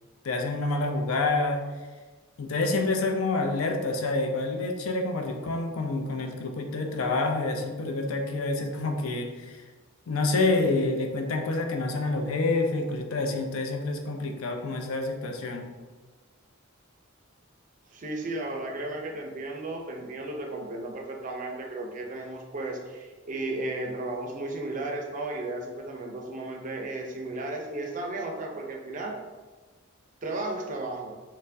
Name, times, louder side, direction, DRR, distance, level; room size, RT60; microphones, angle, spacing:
voice 1, 0.2-1.7 2.4-9.6 10.1-15.7, left 2 dB, 75° left, 4 dB, 0.5 m, -28 dB
voice 2, 17.9-29.2 30.2-31.1, right 2 dB, 40° right, 2 dB, 0.4 m, -34 dB
4.3 x 2.1 x 2.6 m, 1.3 s
head